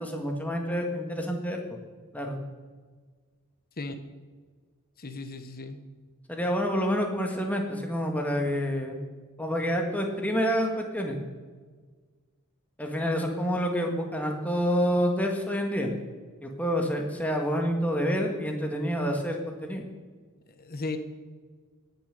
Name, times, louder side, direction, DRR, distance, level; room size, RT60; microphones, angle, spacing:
voice 1, 0.0-1.8 2.1-2.4 6.3-9.0 9.4-11.2 12.8-15.9 16.4-19.8, equal, 5° left, 2 dB, 1.7 m, -28 dB
voice 2, 5.0-5.8 20.6-21.0, left 3 dB, 45° left, 8 dB, 1.1 m, -35 dB
18.0 x 7.0 x 6.7 m, 1.5 s
head